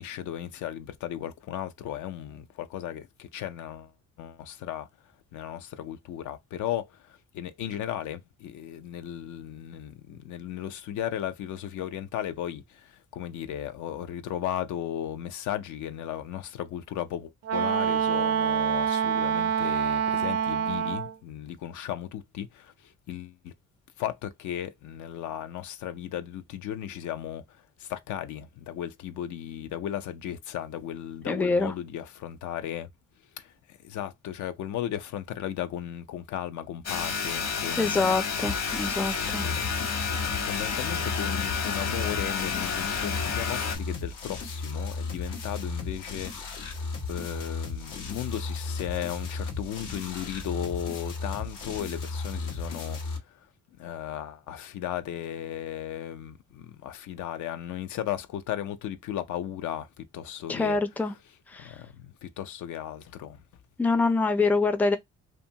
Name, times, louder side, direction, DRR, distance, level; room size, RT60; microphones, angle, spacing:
voice 1, 0.0-23.5 24.0-32.9 33.2-38.2 39.3-60.8 61.0-61.2 61.6-63.4, left 11 dB, 75° left, 0.5 m, -36 dB
Wind instrument woodwind instrument, 17.4-21.1, right 8 dB, 55° right, 0.5 m, -26 dB
voice 2, 31.3-31.7 37.8-39.5 60.5-61.1 61.5-61.8 63.8-65.0, left 3 dB, 5° left, 0.4 m, -25 dB
sound 1, 36.8-43.8, left 6 dB, 60° left, 1.2 m, -30 dB
sound 2, 38.4-53.2, left 4 dB, 90° left, 1.0 m, -35 dB
2.6 x 2.3 x 2.7 m
cardioid pair, 90°, 30 cm